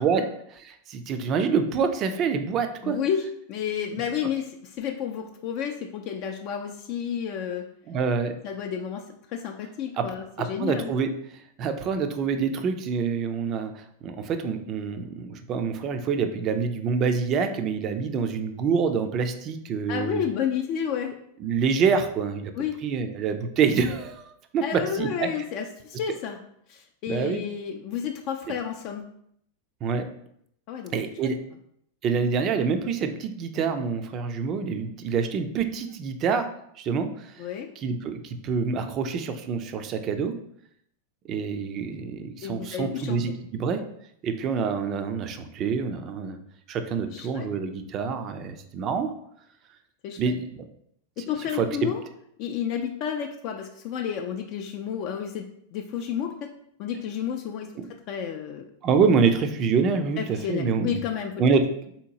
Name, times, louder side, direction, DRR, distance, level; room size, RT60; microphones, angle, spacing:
voice 1, 0.0-3.0 7.9-8.3 10.0-10.1 10.4-11.1 11.6-20.2 21.4-22.5 22.8-25.3 26.1-26.2 27.1-27.4 29.8-30.1 30.9-31.4 32.0-36.5 36.8-37.5 37.8-40.4 41.2-43.8 44.2-46.4 46.7-49.1 50.2-50.6 51.2-51.3 51.5-51.9 57.8-57.9 58.8-61.0 61.4-61.6, right 5 dB, 40° right, 8 dB, 0.4 m, -26 dB
voice 2, 2.8-7.7 8.4-10.9 19.9-21.1 22.5-22.8 24.6-26.4 26.7-29.1 30.7-30.9 31.2-31.3 37.4-37.7 42.4-43.4 47.0-47.5 50.0-50.2 51.2-52.0 52.4-56.5 56.8-57.7 58.1-58.6 60.2-61.4, left 8 dB, 50° left, 3 dB, 0.3 m, -31 dB
3.6 x 2.8 x 2.8 m, 0.72 s
hypercardioid pair, 100°, 0 cm